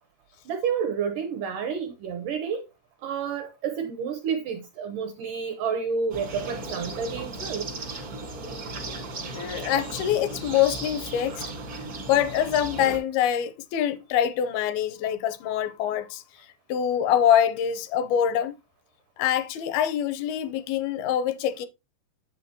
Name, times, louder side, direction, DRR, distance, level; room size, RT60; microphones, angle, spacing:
voice 1, 0.5-2.7 3.0-7.7, right 6 dB, 80° right, 1.9 m, -30 dB
sound 1, 6.1-13.0, right 2 dB, 65° right, 0.9 m, -36 dB
voice 2, 9.3-11.4 12.0-16.2 16.7-18.6 19.2-21.7, left 10 dB, 80° left, 2.4 m, -24 dB
8.5 x 7.5 x 2.8 m
omnidirectional pair, 4.6 m